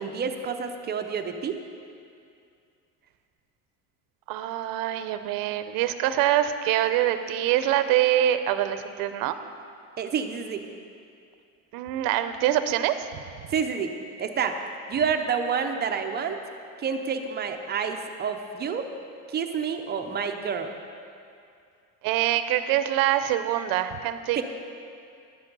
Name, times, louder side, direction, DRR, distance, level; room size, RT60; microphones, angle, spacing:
voice 1, 0.0-1.6 10.0-10.6 13.5-13.9 14.2-14.6 14.9-16.4 16.8-18.9 19.3-20.7 24.4-24.5, right 6 dB, 30° right, 6 dB, 0.6 m, -28 dB
voice 2, 4.3-9.4 11.7-13.1 22.0-24.4, right 12 dB, 65° right, 10 dB, 0.7 m, -24 dB
11.0 x 8.3 x 5.4 m, 2.4 s
cardioid pair, 145°, 36 cm